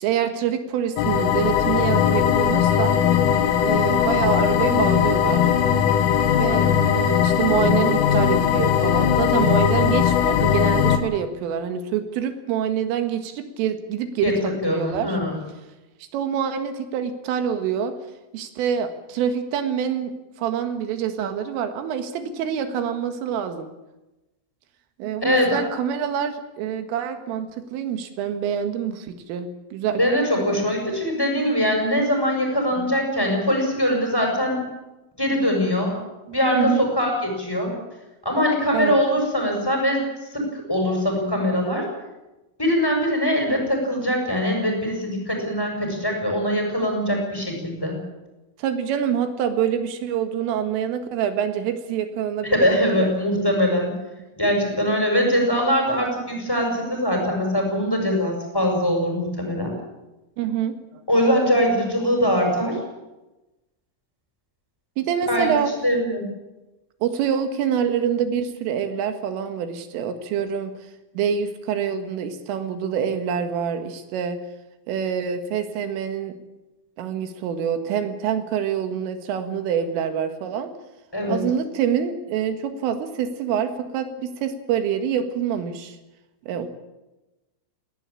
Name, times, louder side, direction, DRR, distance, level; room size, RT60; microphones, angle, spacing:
voice 1, 0.0-3.0 3.6-5.5 6.4-15.2 16.1-18.0 18.3-23.7 25.0-30.0 32.8-32.9 36.3-36.9 38.7-39.0 48.6-53.1 60.4-61.0 65.0-65.7 67.0-70.7 71.2-74.4 74.9-76.4 77.0-80.7 81.3-86.0 86.4-86.7, right 8 dB, 85° right, 8 dB, 4.4 m, -26 dB
sound 1, 1.0-11.0, left 9 dB, 80° left, 4.2 m, -19 dB
voice 2, 14.6-15.4 25.2-25.6 29.9-34.6 35.2-36.0 36.3-37.7 38.2-41.9 42.6-48.0 52.4-53.9 54.4-59.7 61.1-62.8 65.3-65.5 65.8-66.2 81.1-81.5, equal, 5° left, 1 dB, 6.6 m, -22 dB
20.5 x 18.0 x 8.7 m, 1.0 s
omnidirectional pair, 5.7 m